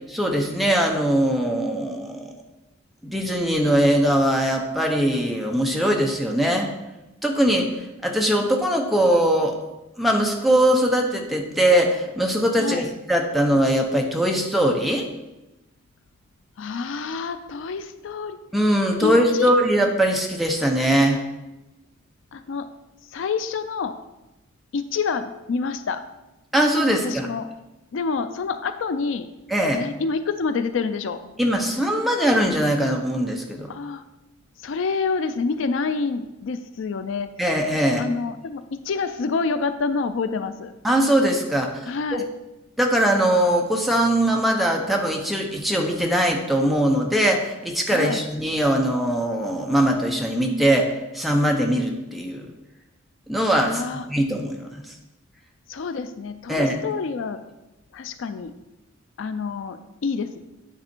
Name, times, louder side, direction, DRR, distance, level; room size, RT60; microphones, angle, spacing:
voice 1, 0.1-2.3 3.0-6.7 7.2-7.7 8.0-9.6 10.0-15.0 18.5-21.2 26.5-27.3 29.5-29.9 31.4-33.7 37.4-38.1 40.8-42.2 42.8-52.4 53.3-54.9 56.5-56.8, right 1 dB, ahead, 1 dB, 0.8 m, -21 dB
voice 2, 16.6-18.4 19.0-19.5 22.3-22.7 23.1-24.0 24.7-26.0 26.9-27.5 27.9-29.3 29.7-31.2 33.7-34.0 34.6-37.3 38.0-40.7 41.9-42.3 47.9-48.2 53.6-54.0 55.7-57.4 57.9-58.5 59.2-60.4, left 4 dB, 65° left, 11 dB, 0.4 m, -27 dB
9.1 x 4.2 x 4.4 m, 0.99 s
head